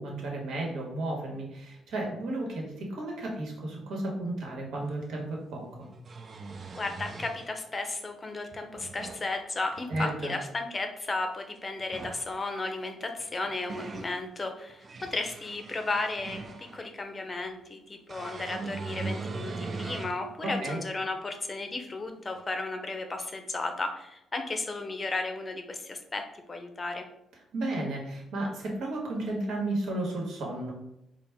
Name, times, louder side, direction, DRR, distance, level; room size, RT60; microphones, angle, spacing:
voice 1, 0.0-5.9 9.9-10.3 20.4-20.8 27.5-30.7, right 2 dB, 75° right, -1 dB, 1.2 m, -33 dB
sound 1, 4.9-5.0 5.8-7.5 8.5-9.3 9.7-10.2 11.8-12.3 13.2-14.1 14.7-16.9 18.1-20.2 20.7-20.8 22.4-22.5, right 4 dB, 40° right, 0.4 m, -40 dB
voice 2, 6.7-27.1, left 3 dB, 30° left, 5 dB, 0.6 m, -34 dB
4.1 x 2.1 x 3.4 m, 0.83 s
cardioid pair, 90°, 0 cm